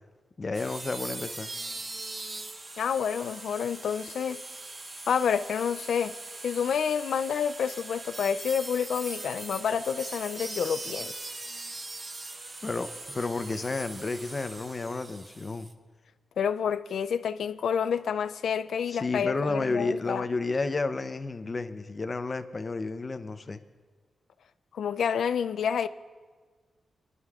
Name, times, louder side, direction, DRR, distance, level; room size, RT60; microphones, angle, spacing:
voice 1, 0.4-1.5 12.6-15.7 18.9-23.6, left 3 dB, 35° left, 0.6 m, -31 dB
sound 1, 0.5-15.7, right 2 dB, 35° right, 0.8 m, -41 dB
voice 2, 2.8-4.4 5.1-6.2 6.4-11.2 16.4-20.2 24.7-25.9, left 7 dB, 80° left, 0.3 m, -29 dB
25.0 x 11.0 x 2.4 m
cardioid pair, 85°, 0 cm